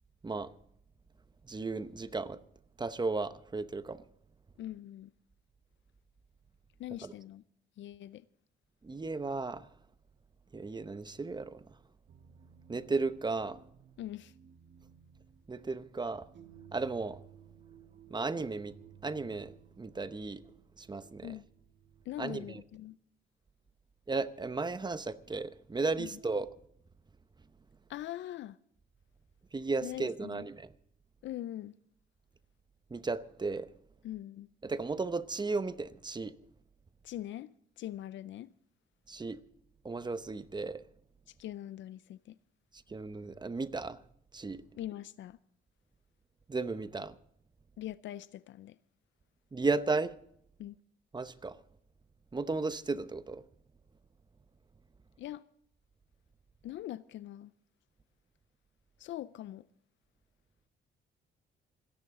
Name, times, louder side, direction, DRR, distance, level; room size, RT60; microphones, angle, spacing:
voice 1, 1.5-2.4 2.8-4.0 7.0-7.1 8.8-9.7 10.5-11.6 12.7-13.6 15.5-16.3 16.7-17.2 18.1-18.7 19.0-20.4 20.8-21.3 22.2-22.6 24.1-26.5 29.5-30.7 32.9-33.7 34.6-36.3 39.1-39.4 39.8-40.8 42.9-44.0 44.3-44.6 46.5-47.2 49.5-50.1 51.1-51.6 52.3-53.4, right 3 dB, 20° right, 0.8 m, -34 dB
voice 2, 4.6-5.1 6.8-7.4 7.8-8.2 14.0-14.3 21.2-21.5 22.1-23.0 26.0-26.2 27.9-28.6 29.8-30.5 31.2-31.8 34.0-34.5 37.0-38.5 41.3-42.4 44.7-45.4 47.8-48.8 50.6-50.7 55.2-55.4 56.6-57.5 59.0-59.7, left 13 dB, 70° left, 0.5 m, -42 dB
sound 1, 12.1-22.8, right 9 dB, 65° right, 1.6 m, -58 dB
27.5 x 11.0 x 3.7 m
cardioid pair, 90°, 20 cm